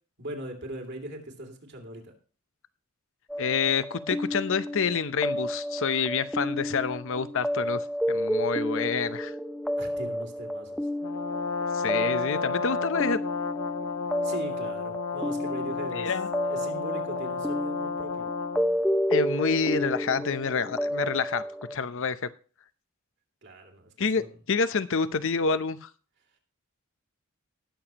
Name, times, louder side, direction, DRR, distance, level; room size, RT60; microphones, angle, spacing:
voice 1, 0.2-2.1 9.8-10.8 14.2-16.2 16.4-18.3 23.4-24.4, right 1 dB, 55° right, 2 dB, 2.9 m, -40 dB
sound 1, 3.3-21.8, equal, ahead, 0.7 m, -31 dB
voice 2, 3.4-9.3 11.7-13.2 15.9-16.3 19.1-21.4 21.7-22.3 24.0-25.9, left 5 dB, 65° left, 13 dB, 0.7 m, -28 dB
Brass instrument, 11.0-18.8, left 5 dB, 90° left, 0.9 m, -32 dB
19.0 x 7.0 x 3.0 m, 0.37 s
head